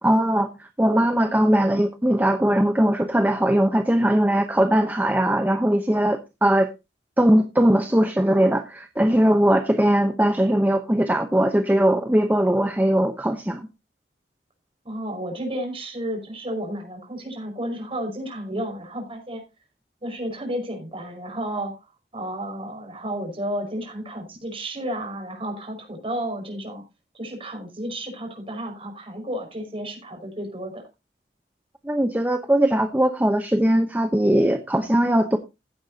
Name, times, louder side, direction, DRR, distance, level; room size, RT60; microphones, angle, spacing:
voice 1, 0.0-6.7 7.2-13.7 31.8-35.4, right 1 dB, 10° right, 6 dB, 0.8 m, -20 dB
voice 2, 14.8-19.4 20.0-26.8 27.1-30.8, right 1 dB, 30° right, 3 dB, 5.4 m, -32 dB
15.5 x 9.0 x 2.8 m, 0.26 s
head